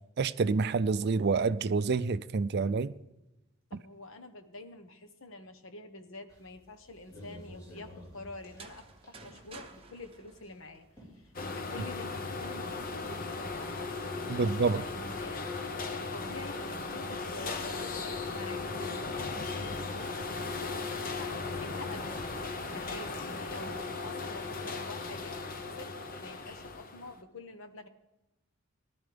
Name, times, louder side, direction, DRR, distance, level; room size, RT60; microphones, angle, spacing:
voice 1, 0.2-2.9 14.3-14.8, right 4 dB, 50° right, 0.4 m, -28 dB
voice 2, 3.7-10.9 11.1-15.4 15.9-20.8 21.0-22.2 22.7-25.9 26.2-27.9, left 2 dB, 70° left, 1.2 m, -47 dB
sound 1, 6.3-24.5, equal, 15° left, 4.8 m, -57 dB
sound 2, 8.4-11.3, right 4 dB, 25° right, 1.0 m, -52 dB
sound 3, 11.3-27.2, left 3 dB, 40° left, 0.9 m, -37 dB
18.5 x 11.5 x 3.4 m
head